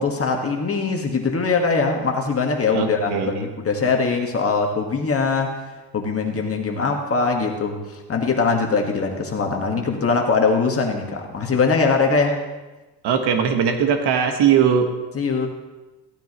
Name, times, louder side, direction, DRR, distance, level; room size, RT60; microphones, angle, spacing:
voice 1, 0.0-5.6 5.9-12.4 15.1-15.5, left 4 dB, 30° left, 2 dB, 1.6 m, -22 dB
voice 2, 2.7-3.5 13.0-14.9, right 7 dB, 55° right, 6 dB, 1.5 m, -20 dB
15.5 x 9.1 x 3.1 m, 1.1 s
supercardioid pair, 95°, 48 cm